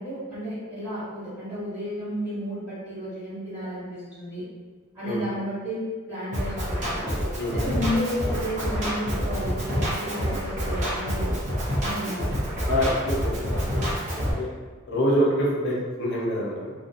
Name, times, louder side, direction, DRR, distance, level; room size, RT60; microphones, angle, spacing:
voice 1, 0.0-4.4 4.9-7.1 7.5-11.3 11.8-12.2, equal, 10° right, -13 dB, 1.1 m, -32 dB
Drum kit, 6.3-14.3, equal, 35° right, 0.6 m, -27 dB
voice 2, 12.7-13.2 13.5-13.8 14.1-14.5 14.9-16.7, equal, 50° left, -5 dB, 0.6 m, -26 dB
2.6 x 2.0 x 2.5 m, 1.4 s
head